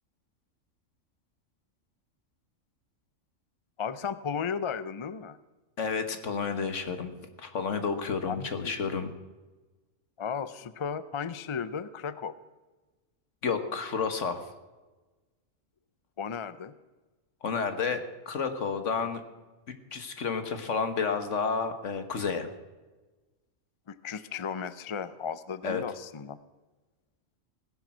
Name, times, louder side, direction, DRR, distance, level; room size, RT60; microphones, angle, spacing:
voice 1, 3.8-5.4 8.3-8.7 10.2-12.3 16.2-16.7 23.9-26.4, left 6 dB, 45° left, 14 dB, 0.4 m, -35 dB
voice 2, 5.8-7.1 7.4-9.1 13.4-14.5 17.4-19.2 19.9-22.5 25.6-25.8, left 5 dB, 65° left, 8 dB, 1.7 m, -30 dB
17.5 x 10.5 x 6.1 m, 1.2 s
omnidirectional pair, 1.4 m